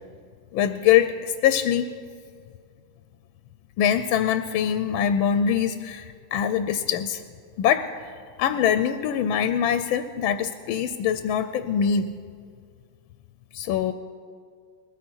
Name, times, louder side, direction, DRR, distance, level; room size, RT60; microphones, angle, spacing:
voice 1, 0.5-1.9 3.8-7.2 7.6-7.9 8.4-12.1 13.5-13.9, left 9 dB, 75° left, 10 dB, 1.3 m, -23 dB
20.5 x 14.0 x 4.5 m, 2.1 s
omnidirectional pair, 2.4 m